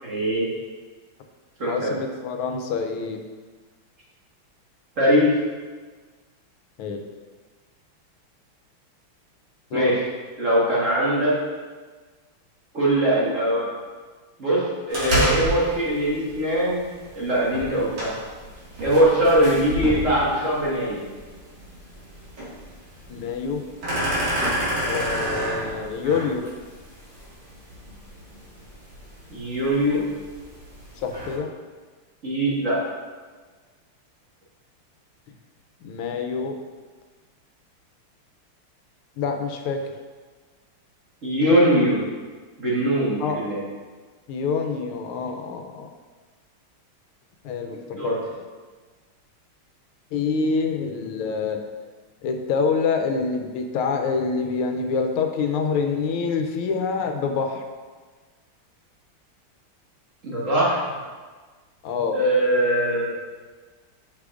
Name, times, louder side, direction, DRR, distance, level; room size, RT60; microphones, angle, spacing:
voice 1, 0.0-0.5 1.6-1.9 5.0-5.3 9.7-10.0 10.4-11.3 12.7-13.7 14.4-16.9 17.1-18.1 18.8-21.0 29.3-30.0 32.2-32.8 41.2-42.0 42.6-43.6 47.9-48.2 60.2-60.8 62.1-63.1, right 1 dB, 40° right, -8 dB, 1.9 m, -21 dB
voice 2, 1.7-3.2 6.8-7.0 9.7-10.0 23.1-23.6 24.8-26.4 31.0-31.5 35.8-36.6 39.2-39.8 43.2-43.4 44.3-45.9 47.4-48.1 50.1-51.6 52.2-57.6 61.8-62.2, left 5 dB, 85° left, 4 dB, 1.5 m, -26 dB
sound 1, 14.9-31.4, equal, 55° right, 2.5 m, -31 dB
8.2 x 6.5 x 2.5 m, 1.4 s
omnidirectional pair, 2.3 m